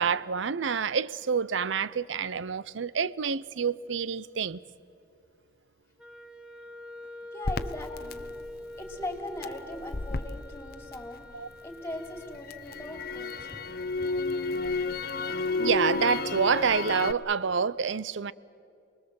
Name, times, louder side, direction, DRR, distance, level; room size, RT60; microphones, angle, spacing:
voice 1, 0.0-4.6 11.3-11.5 15.6-18.3, right 6 dB, 75° right, 0.6 m, -28 dB
Wind instrument woodwind instrument, 6.0-12.5, left 1 dB, 5° right, 1.0 m, -45 dB
voice 2, 7.3-8.2 8.8-13.7 14.0-14.4, left 1 dB, 10° left, 3.0 m, -40 dB
Crackle, 7.4-11.6 12.0-17.1, left 3 dB, 50° left, 0.8 m, -32 dB
29.0 x 20.5 x 7.7 m
head